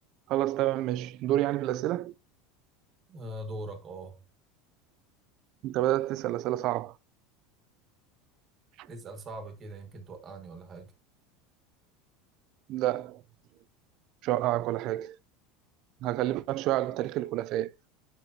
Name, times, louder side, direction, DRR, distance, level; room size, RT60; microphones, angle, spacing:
voice 1, 0.3-2.1 5.6-6.9 8.8-8.9 12.7-13.2 14.2-15.2 16.0-17.7, right 15 dB, 40° right, 0.3 m, -29 dB
voice 2, 3.1-4.2 8.9-10.9, right 1 dB, 25° right, 1.4 m, -41 dB
8.1 x 6.8 x 2.7 m
supercardioid pair, 175°, 0 cm